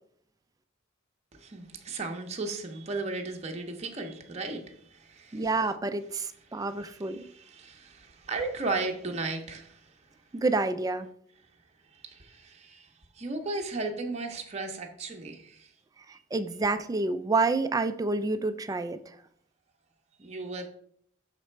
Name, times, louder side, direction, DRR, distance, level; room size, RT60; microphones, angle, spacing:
voice 1, 1.3-5.5 6.5-10.1 11.9-12.9 13.1-15.7 16.1-16.2 20.2-20.7, right 3 dB, 35° right, 0.7 m, -36 dB
voice 2, 5.3-7.2 10.3-11.1 16.1-19.0, right 3 dB, 20° right, 0.3 m, -28 dB
5.8 x 4.1 x 4.4 m
head